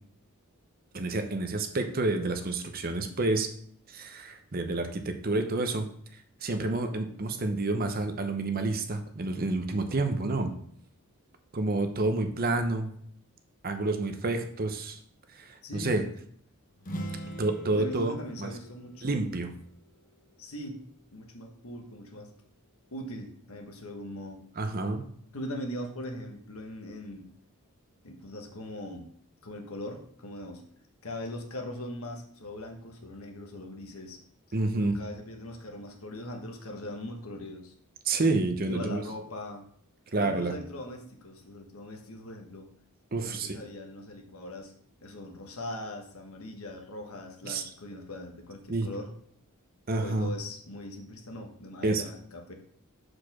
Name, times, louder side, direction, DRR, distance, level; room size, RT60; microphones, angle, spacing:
voice 1, 0.9-3.5 3.9-5.9 6.4-10.5 11.5-12.9 13.6-15.0 15.3-16.0 17.4-18.5 19.0-19.5 24.6-25.0 34.5-35.0 38.0-39.0 40.1-40.5 43.1-43.6 47.4-47.6 48.7-48.9 49.9-50.3 51.8-52.0, right 2 dB, 40° right, 7 dB, 0.7 m, -29 dB
voice 2, 15.6-16.1 17.7-19.2 20.4-20.8 21.1-22.3 22.9-24.4 25.3-27.3 28.0-29.1 29.4-30.6 31.0-34.2 34.8-37.7 38.7-39.7 40.2-42.7 43.2-44.7 45.0-49.1 50.0-52.5, left 1 dB, 70° left, 3 dB, 1.2 m, -40 dB
sound 1, 16.8-20.5, right 1 dB, 40° left, 0.9 m, -42 dB
4.8 x 4.4 x 5.9 m, 0.62 s
head